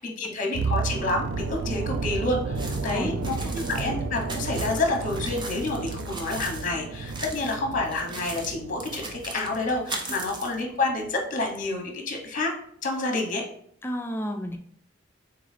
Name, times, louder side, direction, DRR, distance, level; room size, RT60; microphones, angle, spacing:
voice 1, 0.0-12.5 12.8-13.4, left 2 dB, 45° left, 2 dB, 0.9 m, -29 dB
sound 1, 0.5-10.5 10.8-11.0, right 4 dB, 70° right, 0.3 m, -32 dB
sound 2, 2.6-6.7 7.0-7.6 7.9-10.6, right 2 dB, 25° right, 0.7 m, -38 dB
voice 2, 2.8-3.2 3.5-3.6 13.8-14.6, equal, 10° left, 4 dB, 0.4 m, -32 dB
3.8 x 3.8 x 3.2 m, 0.65 s
head